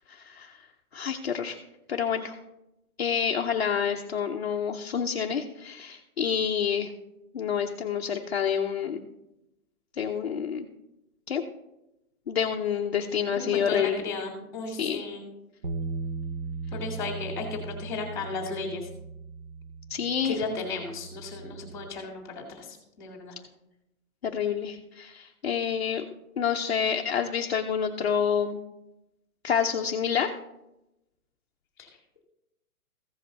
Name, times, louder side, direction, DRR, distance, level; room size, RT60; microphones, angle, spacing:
voice 1, 0.1-0.6 0.9-1.6 1.9-2.4 3.0-6.9 7.3-9.0 10.0-10.7 11.3-11.4 12.3-14.0 14.8-15.0 19.9-20.4 24.2-26.0 26.4-28.6 29.4-30.4, left 7 dB, 45° left, 2 dB, 0.6 m, -28 dB
voice 2, 13.4-15.2 16.7-18.9 20.2-23.4 31.8-31.9, left 4 dB, 5° left, 0 dB, 1.8 m, -35 dB
sound 1, 15.6-21.9, right 4 dB, 40° right, 0.6 m, -38 dB
15.0 x 5.3 x 4.0 m, 0.91 s
hypercardioid pair, 175°, 44 cm